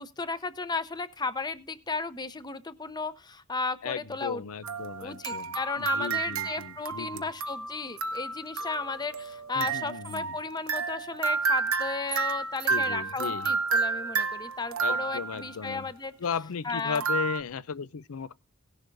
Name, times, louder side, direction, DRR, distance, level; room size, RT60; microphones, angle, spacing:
voice 1, 0.0-4.4 5.0-16.1 16.6-17.0, left 4 dB, 20° left, 0.7 m, -34 dB
voice 2, 3.8-7.3 9.5-10.4 12.7-13.5 14.8-15.9 16.2-18.3, left 6 dB, 85° left, 0.5 m, -36 dB
sound 1, 4.6-15.5 16.9-17.4, right 4 dB, 80° right, 1.0 m, -31 dB
17.5 x 11.0 x 2.6 m
head